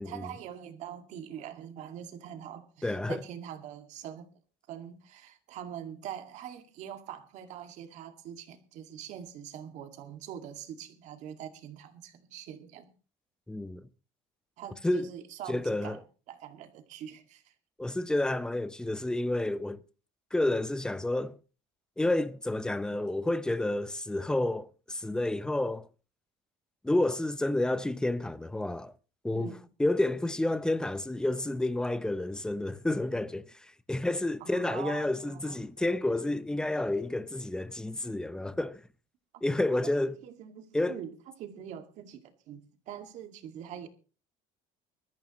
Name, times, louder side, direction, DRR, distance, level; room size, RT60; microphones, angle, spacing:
voice 1, 0.0-4.3 4.7-12.9 14.6-16.0 16.3-17.5 29.3-29.6 34.4-35.6 39.3-39.4 40.2-43.9, right 9 dB, 60° right, 2.1 m, -44 dB
voice 2, 2.8-3.2 13.5-13.9 14.8-15.1 15.5-16.0 17.8-19.8 20.3-21.4 22.0-25.9 26.8-28.9 29.2-29.5 29.8-38.8 39.4-40.2 40.7-41.0, left 1 dB, 5° left, 0.6 m, -30 dB
21.0 x 13.0 x 3.1 m
cardioid pair, 135°, 14 cm